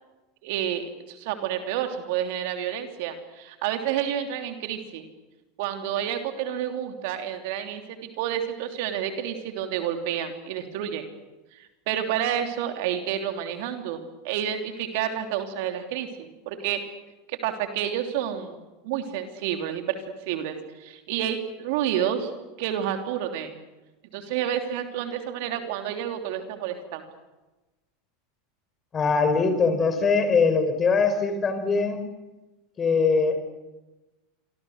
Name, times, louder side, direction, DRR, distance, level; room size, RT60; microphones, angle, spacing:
voice 1, 0.4-5.1 5.6-11.0 11.6-16.9 17.3-18.6 18.8-22.3 22.6-23.5 24.1-27.0, right 10 dB, 60° right, 6 dB, 3.2 m, -29 dB
voice 2, 28.9-32.0 32.8-33.4, left 4 dB, 25° left, 9 dB, 5.2 m, -22 dB
27.5 x 24.5 x 6.6 m, 1.1 s
hypercardioid pair, 90°, 0 cm